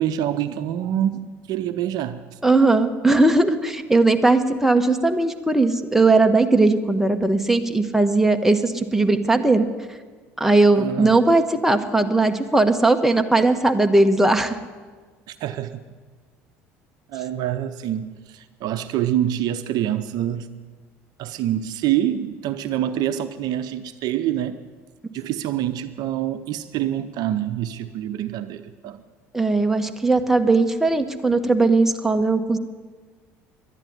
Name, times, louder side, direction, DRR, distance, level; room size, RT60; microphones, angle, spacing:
voice 1, 0.0-2.4 10.8-11.2 15.3-15.8 17.1-20.5 21.2-24.6 25.1-29.0, right 11 dB, 60° right, 11 dB, 0.7 m, -26 dB
voice 2, 2.4-9.7 10.4-14.6 29.3-32.6, right 2 dB, 5° right, 6 dB, 1.3 m, -18 dB
11.5 x 10.5 x 9.6 m, 1.5 s
hypercardioid pair, 65°, 8 cm